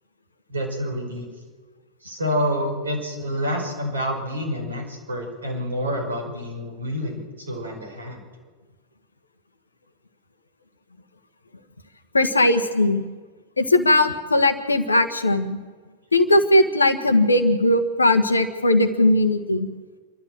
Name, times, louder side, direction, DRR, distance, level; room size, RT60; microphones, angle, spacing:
voice 1, 0.5-1.3 2.0-8.3, equal, 70° right, 3 dB, 5.7 m, -28 dB
voice 2, 12.1-13.0 13.6-15.6 16.1-19.7, left 1 dB, 80° left, 11 dB, 1.5 m, -19 dB
28.5 x 13.0 x 7.7 m, 1.4 s
figure-of-eight pair, 90°, 0 cm